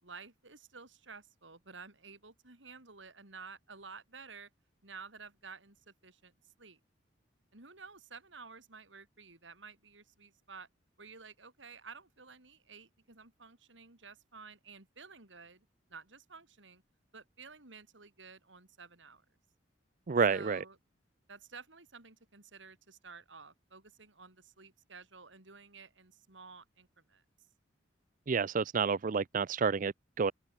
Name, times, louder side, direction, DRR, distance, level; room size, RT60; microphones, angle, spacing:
voice 1, 0.0-4.5 4.8-6.8 7.5-10.7 11.0-16.8 17.1-19.2 20.3-20.8 21.3-27.2, right 5 dB, 85° right, 4.2 m, -52 dB
voice 2, 20.1-20.6 28.3-30.3, right 5 dB, 45° right, 0.5 m, -29 dB
head